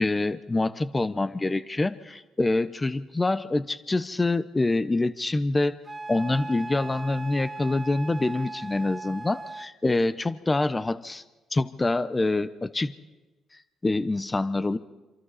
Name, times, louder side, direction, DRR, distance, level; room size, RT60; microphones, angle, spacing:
voice 1, 0.0-5.8 6.1-11.2 11.5-12.9 13.8-14.8, left 2 dB, 20° left, 13 dB, 0.9 m, -26 dB
Wind instrument woodwind instrument, 5.9-9.7, right 3 dB, 20° right, 0.7 m, -38 dB
27.0 x 27.0 x 4.2 m, 1.2 s
cardioid pair, 90°, 0 cm